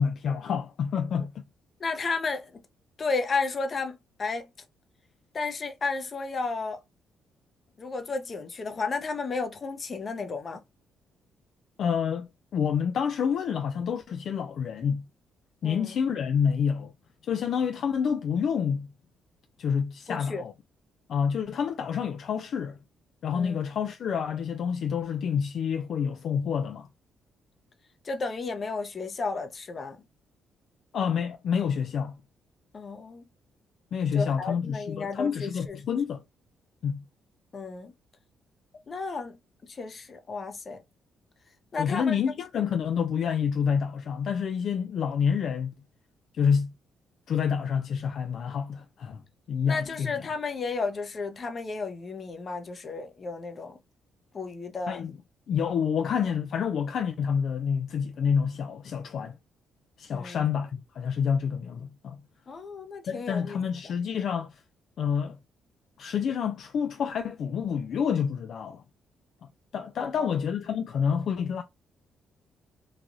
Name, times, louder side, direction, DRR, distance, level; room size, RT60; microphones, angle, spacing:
voice 1, 0.0-1.4 11.8-15.1 15.6-16.9 17.2-18.9 19.6-20.5 21.1-22.8 23.2-26.9 30.9-32.2 33.9-36.2 36.8-37.0 41.8-45.7 46.4-46.7 47.3-49.2 49.5-50.1 54.9-55.1 55.5-59.4 60.0-62.2 63.1-64.6 65.0-65.4 66.0-68.8 69.7-71.6, left 7 dB, 65° left, 0.3 m, -28 dB
voice 2, 1.8-2.6 3.0-4.5 5.3-6.8 7.8-10.6 15.6-15.9 20.1-20.4 23.3-23.6 28.0-30.0 32.7-33.2 34.1-35.8 37.5-37.9 38.9-40.8 41.7-42.2 49.7-53.8 54.3-55.0 60.1-60.4 62.5-63.6 70.0-70.3, left 4 dB, 40° left, 0.7 m, -33 dB
3.2 x 2.3 x 2.5 m
cardioid pair, 90°, 0 cm